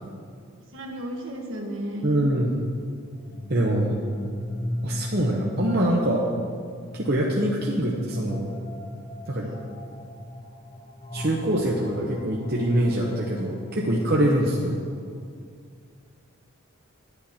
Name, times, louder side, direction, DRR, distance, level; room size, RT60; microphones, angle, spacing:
voice 1, 0.7-2.3 9.4-9.6, right 1 dB, 65° right, 0 dB, 1.6 m, -34 dB
voice 2, 2.0-2.6 3.5-4.0 4.8-6.3 6.9-8.5 9.3-9.5 11.1-14.8, right 1 dB, 45° right, -3 dB, 0.9 m, -24 dB
sound 1, 3.0-14.9, left 1 dB, 30° left, 0.7 m, -38 dB
10.5 x 10.0 x 4.3 m, 2.2 s
head